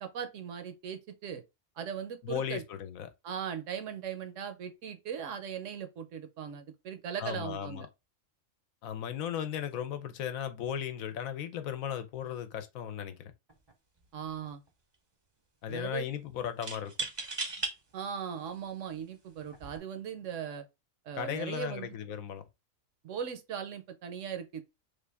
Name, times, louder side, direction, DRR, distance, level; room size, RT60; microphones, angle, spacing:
voice 1, 0.0-1.4 1.8-2.6 3.2-7.9 14.1-14.6 15.7-16.1 17.9-20.6 21.1-21.9 23.0-24.6, right 8 dB, 70° right, 0.9 m, -39 dB
voice 2, 2.2-3.1 7.2-7.9 8.8-13.3 15.6-16.9 21.1-22.4, left 9 dB, 80° left, 1.0 m, -36 dB
sound 1, 13.5-13.7 14.0-14.7 16.6-17.7 18.5-18.6 19.5-19.8, right 3 dB, 30° right, 0.4 m, -37 dB
3.3 x 2.5 x 3.3 m
omnidirectional pair, 1.4 m